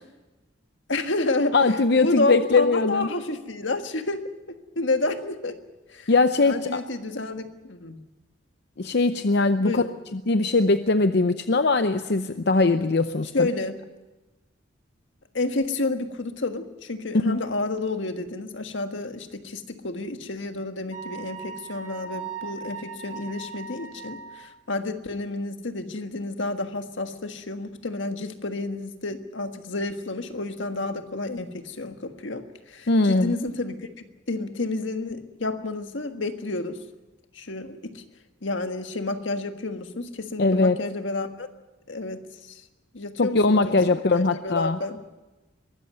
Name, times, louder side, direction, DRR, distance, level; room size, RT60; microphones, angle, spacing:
voice 1, 0.9-5.6 5.9-6.1 6.4-8.0 9.6-9.9 13.3-13.8 15.3-33.8 34.3-36.8 37.3-38.0 38.4-41.5 41.9-42.6 42.9-45.0, left 2 dB, 85° left, 7 dB, 1.6 m, -30 dB
voice 2, 1.5-3.1 6.1-6.8 8.8-9.8 10.1-13.5 17.3-17.4 32.9-33.3 40.4-40.8 43.2-44.8, left 3 dB, 60° left, 10 dB, 0.7 m, -21 dB
Wind instrument woodwind instrument, 20.9-24.4, right 6 dB, 45° right, 4.4 m, -38 dB
22.5 x 13.5 x 9.4 m, 1.1 s
head